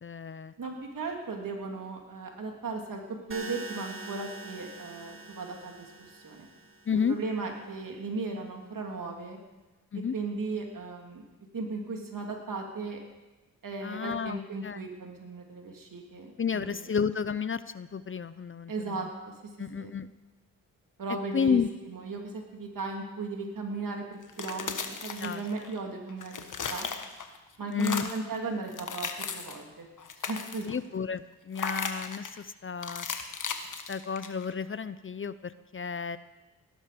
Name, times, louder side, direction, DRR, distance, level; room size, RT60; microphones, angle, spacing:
voice 1, 0.0-0.5 6.9-7.2 9.9-10.1 13.8-14.8 16.4-19.0 19.6-20.1 21.3-21.7 25.2-25.4 27.7-28.1 30.6-33.1 33.9-36.2, left 6 dB, 35° left, 15 dB, 0.6 m, -31 dB
voice 2, 0.6-3.0 3.3-6.5 7.1-9.4 10.1-11.2 11.5-13.0 13.6-16.9 18.7-19.3 19.8-19.9 21.0-21.6 21.9-22.2 22.5-26.4 26.7-26.9 27.6-29.9 30.2-30.7, right 3 dB, 65° right, 2 dB, 2.9 m, -36 dB
sound 1, 3.3-7.3, right 2 dB, 35° right, 2.2 m, -44 dB
sound 2, 24.2-25.8 26.1-27.4 27.7-28.3 28.7-29.6 30.0-30.8 31.5-32.4 32.8-34.5, left 5 dB, 60° left, 1.4 m, -36 dB
18.0 x 11.5 x 5.2 m, 1.1 s
cardioid pair, 60°, 35 cm